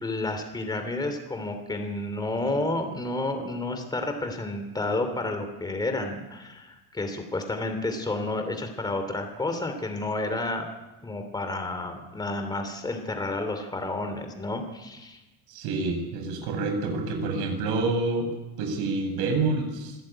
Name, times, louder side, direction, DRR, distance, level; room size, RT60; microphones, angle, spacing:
voice 1, 0.0-10.6 11.0-15.2, left 2 dB, 10° left, 6 dB, 2.9 m, -30 dB
voice 2, 15.5-18.3 18.6-20.0, right 3 dB, 85° right, 5 dB, 7.8 m, -27 dB
27.5 x 18.5 x 8.9 m, 1.1 s
cardioid pair, 165°, 38 cm